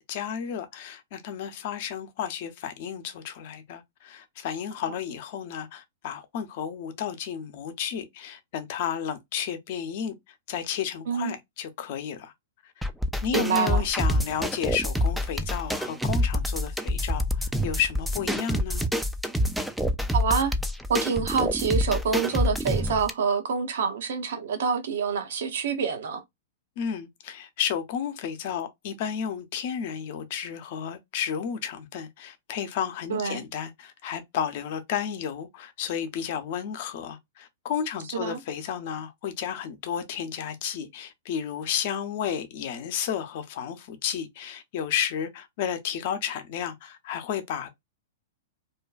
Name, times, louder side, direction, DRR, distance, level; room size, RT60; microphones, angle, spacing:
voice 1, 0.1-10.1 10.5-12.3 12.8-12.9 13.2-18.9 26.8-47.7, left 8 dB, 55° left, 0.7 m, -32 dB
sound 1, 12.8-23.1, equal, ahead, 0.3 m, -27 dB
voice 2, 13.3-13.8 20.1-20.5 20.9-26.2 33.1-33.4 38.1-38.4, right 6 dB, 65° right, 0.7 m, -27 dB
2.5 x 2.2 x 2.4 m
hypercardioid pair, 115°, 0 cm